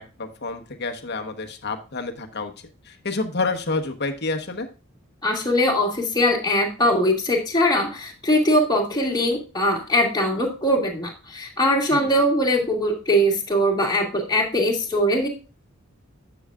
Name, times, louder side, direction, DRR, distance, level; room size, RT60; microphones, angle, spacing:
voice 1, 0.0-2.5 2.8-4.7 11.9-12.1, left 3 dB, 50° left, 5 dB, 1.1 m, -29 dB
voice 2, 5.2-15.3, equal, 20° left, -1 dB, 2.3 m, -21 dB
11.0 x 7.1 x 2.4 m, 0.34 s
head